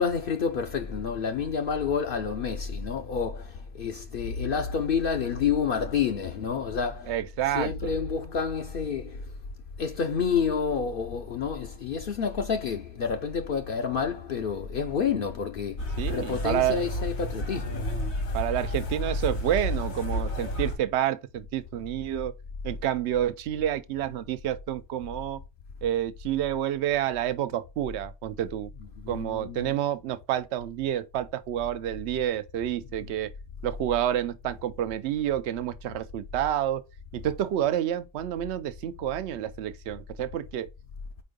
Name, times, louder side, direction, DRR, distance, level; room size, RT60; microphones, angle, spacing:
voice 1, 0.0-9.3 9.8-17.9 28.8-29.7 33.0-33.1, left 6 dB, 60° left, 0.8 m, -29 dB
voice 2, 7.1-7.9 16.0-16.8 18.3-22.3 22.6-25.4 25.8-28.7 29.1-33.3 33.6-36.8 37.1-40.7, right 11 dB, 80° right, 0.9 m, -29 dB
sound 1, 15.8-20.8, left 1 dB, 80° left, 2.3 m, -31 dB
4.5 x 4.3 x 5.1 m
omnidirectional pair, 1.1 m